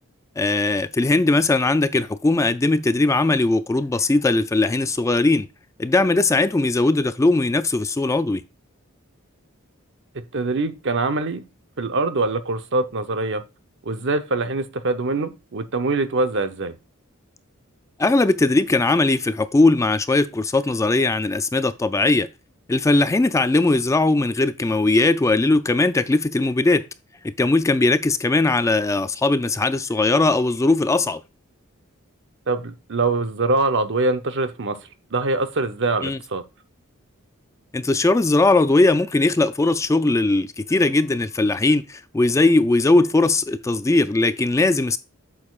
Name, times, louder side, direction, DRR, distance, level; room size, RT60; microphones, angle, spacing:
voice 1, 0.4-5.5 5.8-8.4 18.0-22.3 22.7-26.9 27.4-31.2 36.0-36.2 37.7-45.0, left 2 dB, 15° left, 0.3 m, -19 dB
voice 2, 10.1-11.4 11.8-13.4 13.8-16.7 32.5-34.8 35.1-36.4, right 3 dB, 60° right, 0.8 m, -23 dB
8.6 x 6.5 x 2.4 m
head